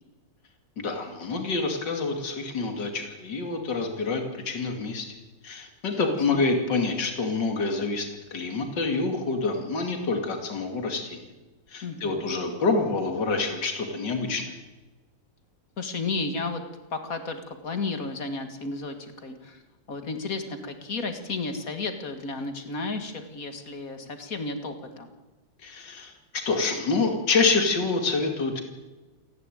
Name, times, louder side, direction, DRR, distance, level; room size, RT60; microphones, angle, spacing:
voice 1, 0.8-5.1 5.4-11.3 11.7-14.5 25.6-28.6, left 3 dB, 60° left, 4 dB, 3.1 m, -27 dB
voice 2, 5.9-6.4 11.8-12.2 15.8-16.6 16.9-19.6 19.9-25.1, left 3 dB, 45° left, 7 dB, 2.2 m, -33 dB
29.0 x 11.0 x 9.3 m, 1.2 s
omnidirectional pair, 2.1 m